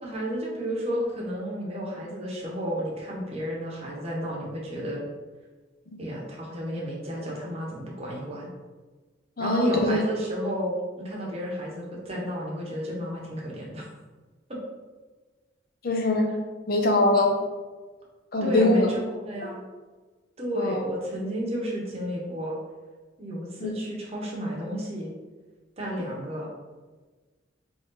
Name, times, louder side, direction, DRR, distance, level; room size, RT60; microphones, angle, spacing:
voice 1, 0.0-5.0 6.0-8.5 9.4-13.8 14.5-14.6 18.4-19.6 20.4-22.6 23.2-25.1 25.8-26.5, equal, 30° right, -4 dB, 1.0 m, -31 dB
voice 2, 9.4-10.0 15.8-16.3 16.7-17.3 18.3-18.9 19.4-19.5 20.6-20.8 23.6-23.7, left 2 dB, 50° left, 3 dB, 0.7 m, -23 dB
3.9 x 3.2 x 3.9 m, 1.3 s
head